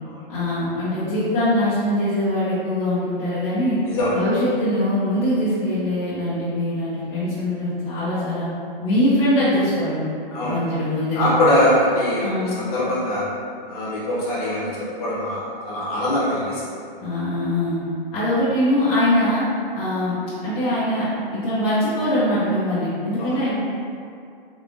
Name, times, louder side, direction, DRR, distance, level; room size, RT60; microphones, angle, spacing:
voice 1, 0.3-3.8 4.1-8.5 8.8-10.0 10.4-11.3 12.2-12.5 17.0-17.8 18.1-19.4 19.7-20.2 20.4-21.1 21.3-23.5, left 1 dB, 20° left, -12 dB, 0.7 m, -22 dB
voice 2, 3.8-4.2 10.3-10.6 11.2-12.3 12.6-13.2 13.7-14.7 15.0-16.6 23.2-23.4, left 1 dB, 40° left, -7 dB, 1.1 m, -22 dB
3.5 x 3.4 x 2.5 m, 2.4 s
hypercardioid pair, 145°, 29 cm